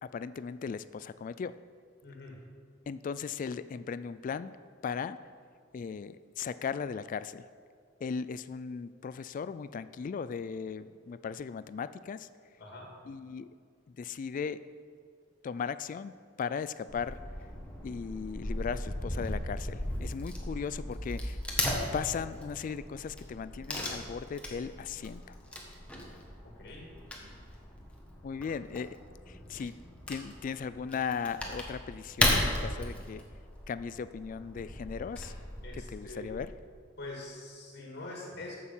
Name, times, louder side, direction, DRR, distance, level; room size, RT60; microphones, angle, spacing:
voice 1, 0.0-1.6 2.9-4.6 4.8-5.2 5.7-7.4 8.0-12.3 13.1-13.5 14.0-14.6 15.4-17.2 17.8-21.4 21.9-25.4 28.2-29.0 29.3-29.7 30.1-33.2 33.7-35.3 35.7-36.5, left 6 dB, 45° left, 15 dB, 0.3 m, -37 dB
voice 2, 2.0-2.4 12.6-12.9 26.4-26.9 35.6-36.4 37.0-38.6, left 2 dB, 60° left, -1 dB, 1.9 m, -44 dB
Wood / Tearing, 16.9-36.5, left 1 dB, 5° left, 1.5 m, -36 dB
14.0 x 6.5 x 5.6 m, 2.1 s
head